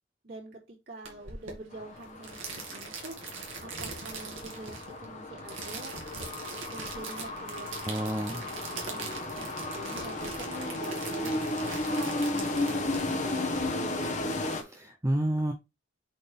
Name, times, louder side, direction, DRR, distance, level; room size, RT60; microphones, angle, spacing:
voice 1, 0.2-4.7 5.0-6.0 6.7-7.7 8.4-14.2, right 2 dB, 55° right, -4 dB, 3.8 m, -45 dB
sound 1, 1.1-13.7, right 4 dB, 75° right, 2.3 m, -42 dB
sound 2, 1.7-14.6, left 2 dB, 40° left, 1.3 m, -34 dB
voice 2, 7.9-8.5 14.4-15.5, right 1 dB, 15° right, 4 dB, 0.7 m, -30 dB
7.7 x 4.1 x 3.5 m, 0.24 s
head